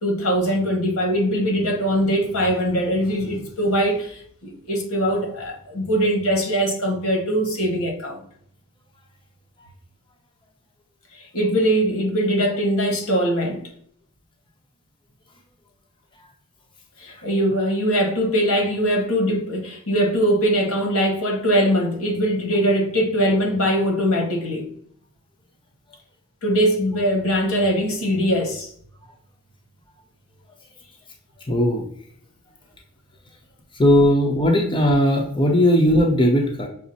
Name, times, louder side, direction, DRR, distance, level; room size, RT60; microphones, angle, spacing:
voice 1, 0.0-8.2 11.2-13.6 17.0-24.7 26.4-28.7, equal, 80° left, 1.5 m, -21 dB
voice 2, 31.5-31.8 33.8-36.7, equal, 25° left, 0.7 m, -17 dB
6.0 x 2.1 x 4.0 m
head